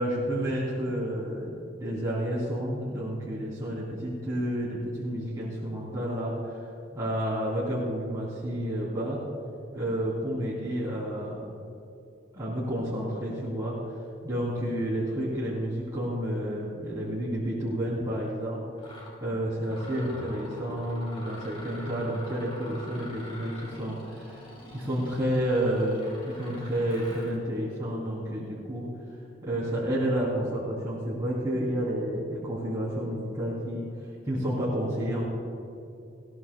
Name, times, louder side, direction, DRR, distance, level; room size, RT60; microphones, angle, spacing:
voice 1, 0.0-6.7 6.9-9.2 9.7-11.5 12.3-13.8 14.2-18.6 19.2-28.9 29.4-35.3, equal, 20° right, -8 dB, 2.8 m, -30 dB
Mechanisms, 18.2-18.3 18.8-19.2 19.6-27.4, left 1 dB, 30° left, 3.4 m, -46 dB
20.5 x 17.5 x 2.2 m, 2.6 s
head